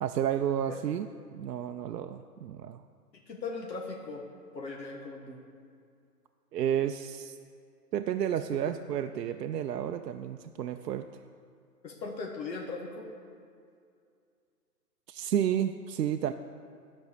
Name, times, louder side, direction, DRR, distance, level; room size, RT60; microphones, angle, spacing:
voice 1, 0.0-2.8 6.5-7.4 7.9-11.1 15.1-16.3, right 10 dB, 75° right, 7 dB, 0.6 m, -31 dB
voice 2, 3.3-4.2 4.5-5.4 11.8-13.1, left 3 dB, 85° left, 0 dB, 1.6 m, -38 dB
12.0 x 5.3 x 6.7 m, 2.3 s
hypercardioid pair, 155°, 50 cm